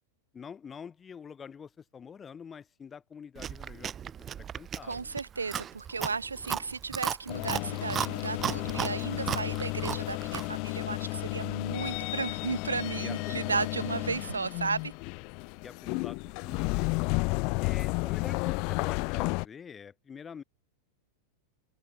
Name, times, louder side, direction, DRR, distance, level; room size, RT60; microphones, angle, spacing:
voice 1, 0.3-5.1 13.0-13.7 14.2-14.3 15.6-16.9 17.6-20.4, left 7 dB, 20° left, 6.6 m, -46 dB
Chewing mastication, 3.4-10.6, right 9 dB, 25° right, 2.7 m, -36 dB
voice 2, 4.8-14.9, right 4 dB, 75° right, 3.0 m, -34 dB
sound 1, 7.3-19.4, left 32 dB, 45° left, 0.4 m, -32 dB
figure-of-eight pair, 90°, 0 cm